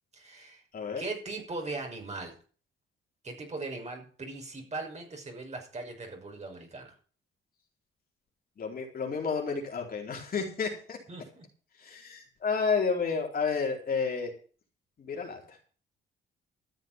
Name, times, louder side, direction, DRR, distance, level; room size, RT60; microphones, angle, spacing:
voice 1, 0.1-0.6 1.0-2.3 3.2-6.9 11.1-11.5, right 3 dB, 35° right, 2 dB, 5.8 m, -39 dB
voice 2, 8.6-11.0 11.8-14.3 15.0-15.6, left 5 dB, 50° left, 1 dB, 4.4 m, -31 dB
14.0 x 7.5 x 7.5 m, 0.41 s
cardioid pair, 90°, 20 cm